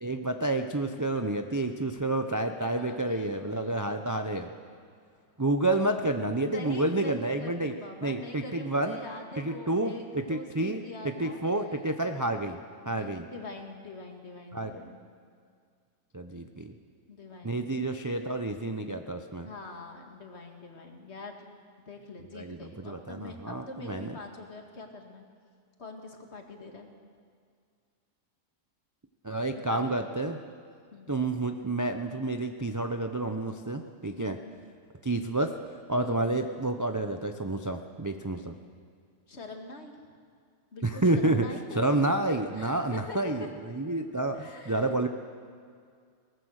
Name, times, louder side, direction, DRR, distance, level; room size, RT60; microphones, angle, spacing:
voice 1, 0.0-4.5 5.4-7.7 8.0-9.0 9.4-10.8 11.2-12.6 12.9-13.3 14.5-14.7 16.1-16.7 17.4-19.5 22.3-24.2 29.2-30.4 31.1-34.4 35.0-35.6 35.9-38.5 40.8-41.5 41.7-45.1, right 2 dB, 25° right, 6 dB, 0.3 m, -29 dB
voice 2, 2.7-3.9 6.4-11.8 12.8-15.0 17.1-17.6 19.4-21.4 21.9-25.2 25.8-26.9 29.5-30.0 30.9-31.1 34.2-34.6 35.9-36.2 39.3-40.0 40.7-43.5 44.3-44.9, left 2 dB, 40° left, 3 dB, 2.2 m, -44 dB
22.0 x 18.5 x 6.5 m, 2.1 s
omnidirectional pair, 1.7 m